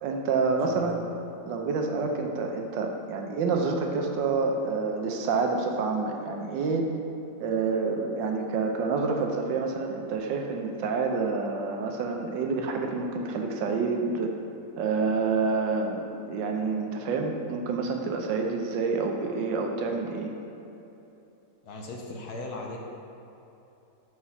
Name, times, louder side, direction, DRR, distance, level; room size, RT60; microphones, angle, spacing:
voice 1, 0.0-1.0 1.5-6.8 7.4-14.3 14.8-20.3, right 4 dB, 75° right, 3 dB, 1.4 m, -28 dB
voice 2, 0.7-1.0 21.6-22.8, left 2 dB, 65° left, 0 dB, 1.1 m, -38 dB
6.0 x 4.7 x 5.6 m, 2.9 s
omnidirectional pair, 2.0 m